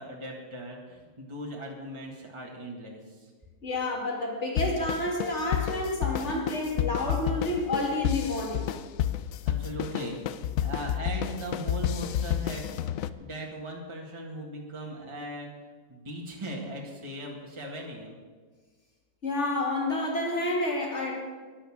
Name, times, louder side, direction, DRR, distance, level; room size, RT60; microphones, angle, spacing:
voice 1, 0.0-3.3 9.4-15.5 15.9-18.2, right 1 dB, 20° right, -1 dB, 1.8 m, -39 dB
voice 2, 3.6-8.7 19.2-21.2, left 1 dB, 45° left, 0 dB, 2.9 m, -29 dB
sound 1, 4.6-13.1, left 11 dB, 70° left, 0.9 m, -31 dB
11.5 x 11.0 x 7.2 m, 1.4 s
omnidirectional pair, 1.6 m